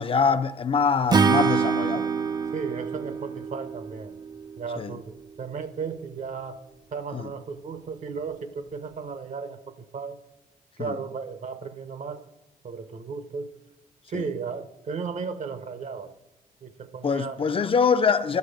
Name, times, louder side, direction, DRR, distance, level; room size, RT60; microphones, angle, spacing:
voice 1, 0.0-2.0 4.8-4.9 7.1-7.3 10.8-10.9 14.1-14.2 17.0-18.4, left 5 dB, 40° left, 0.5 m, -24 dB
Acoustic guitar / Strum, 1.1-4.4, right 5 dB, 30° right, 0.5 m, -25 dB
voice 2, 2.5-4.2 4.6-6.6 6.9-10.2 10.8-12.3 12.6-13.6 14.1-16.1 16.6-17.5, right 5 dB, 55° right, 0.9 m, -35 dB
12.0 x 6.4 x 5.2 m
cardioid pair, 80°, 15 cm